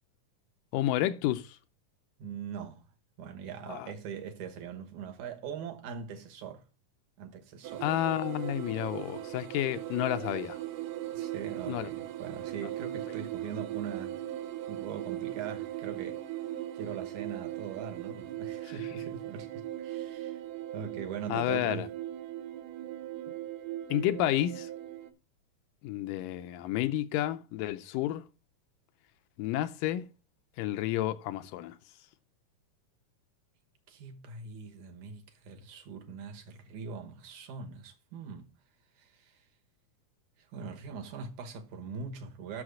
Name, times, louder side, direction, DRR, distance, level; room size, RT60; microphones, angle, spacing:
voice 1, 0.7-1.6 3.7-3.9 7.8-10.6 11.7-11.9 18.7-18.8 21.3-21.9 23.9-24.7 25.8-28.3 29.4-30.1 30.6-31.7, left 13 dB, 90° left, 2.4 m, -30 dB
voice 2, 2.2-2.9 3.2-6.6 7.2-7.9 11.1-14.2 14.7-16.2 16.7-20.4 20.7-21.9 33.9-38.5 39.0-39.4 40.5-42.6, right 6 dB, 70° right, 2.5 m, -42 dB
sound 1, 7.6-25.1, right 13 dB, 85° right, 2.5 m, -39 dB
6.6 x 6.0 x 6.2 m
omnidirectional pair, 3.8 m